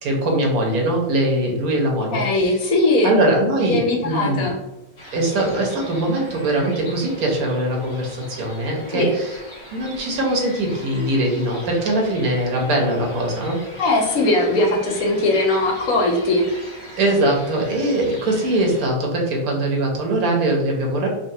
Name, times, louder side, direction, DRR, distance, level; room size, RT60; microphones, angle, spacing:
voice 1, 0.0-2.2 3.0-4.5 5.1-9.4 9.7-13.6 17.0-21.1, right 1 dB, 80° right, 0 dB, 1.3 m, -21 dB
voice 2, 2.1-3.1 3.7-4.6 8.9-9.1 13.8-16.4, left 2 dB, 75° left, 0 dB, 1.2 m, -19 dB
sound 1, 5.0-18.9, left 1 dB, 50° left, 1.1 m, -40 dB
3.9 x 2.0 x 2.6 m, 0.97 s
omnidirectional pair, 1.5 m